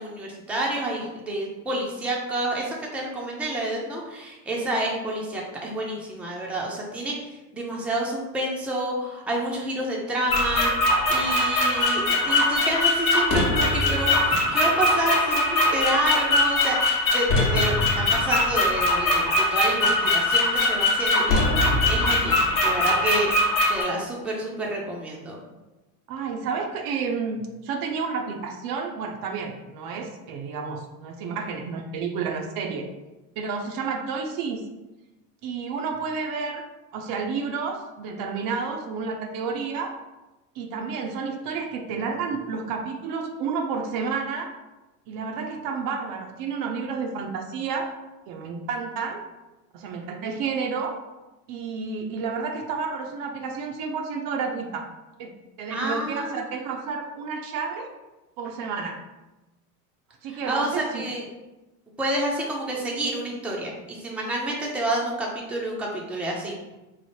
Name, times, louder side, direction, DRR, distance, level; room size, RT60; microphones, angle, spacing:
voice 1, 0.0-23.3 23.7-25.4 55.7-56.5 60.3-61.2 62.0-66.5, right 1 dB, 5° right, -2 dB, 0.5 m, -29 dB
sound 1, 10.3-23.8, left 2 dB, 45° left, 1.0 m, -22 dB
voice 2, 26.1-32.9 33.4-34.6 35.4-36.6 36.9-39.9 40.6-44.5 45.1-47.9 48.3-49.2 49.7-51.0 51.5-54.9 55.2-57.9 58.4-59.0 60.2-61.0, right 5 dB, 50° right, 3 dB, 0.5 m, -30 dB
3.2 x 2.0 x 4.2 m, 1.1 s
supercardioid pair, 105°, 45 cm